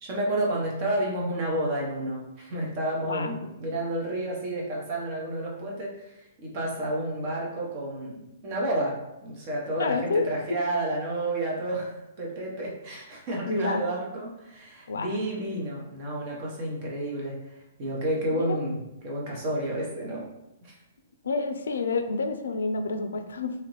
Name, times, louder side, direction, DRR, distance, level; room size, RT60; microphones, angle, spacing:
voice 1, 0.0-17.4 17.8-20.3 20.6-20.8, right 1 dB, 40° right, -3 dB, 0.9 m, -30 dB
voice 2, 9.8-10.3 13.5-13.8 14.9-15.2 18.3-18.6 21.2-23.5, left 4 dB, 85° left, 7 dB, 0.4 m, -29 dB
2.9 x 2.4 x 3.1 m, 0.90 s
hypercardioid pair, 135°, 0 cm